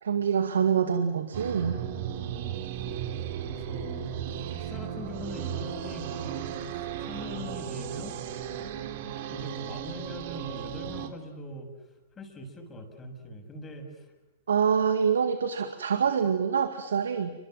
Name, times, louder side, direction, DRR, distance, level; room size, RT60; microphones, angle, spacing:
voice 1, 0.0-1.8 14.5-17.3, right 7 dB, 75° right, 8 dB, 2.1 m, -25 dB
sound 1, 1.3-11.1, right 9 dB, 55° right, 3.2 m, -35 dB
voice 2, 3.4-4.2 4.6-8.2 9.3-11.7 12.2-14.1, left 1 dB, 20° left, 5 dB, 6.8 m, -41 dB
29.5 x 25.5 x 7.7 m, 1.0 s
hypercardioid pair, 110°, 0 cm